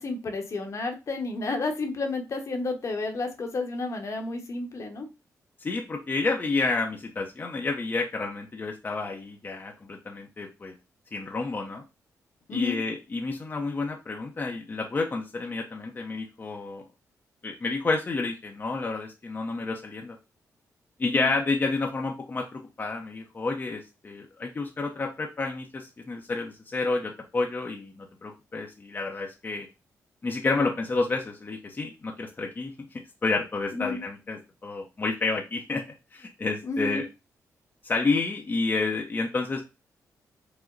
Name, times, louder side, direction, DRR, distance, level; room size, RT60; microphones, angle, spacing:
voice 1, 0.0-5.1 12.5-12.8 21.1-21.3 33.7-34.0 36.6-37.0, left 3 dB, 55° left, 5 dB, 1.0 m, -31 dB
voice 2, 5.6-10.7 11.1-11.8 12.5-16.8 17.4-20.2 21.0-29.7 30.2-32.7 33.2-35.8 36.1-37.0 37.8-39.6, left 3 dB, 30° left, 1 dB, 0.6 m, -30 dB
4.9 x 2.1 x 3.8 m, 0.28 s
cardioid pair, 85°, 6 cm